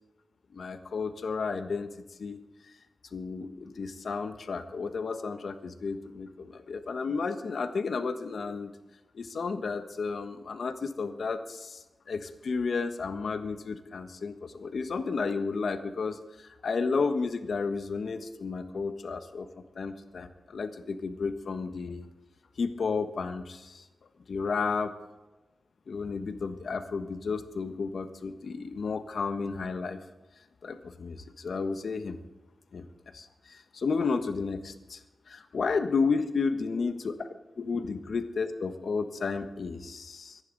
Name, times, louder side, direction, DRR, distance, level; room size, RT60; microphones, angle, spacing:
voice 1, 0.5-2.4 3.1-8.8 9.1-19.5 19.7-22.1 22.6-23.8 24.3-24.9 25.9-30.0 30.6-32.2 32.7-32.9 33.1-35.0 35.3-37.1 37.6-40.4, left 4 dB, 70° left, 8 dB, 1.3 m, -32 dB
24.5 x 10.5 x 4.1 m, 1.1 s
wide cardioid pair, 80°, 0 cm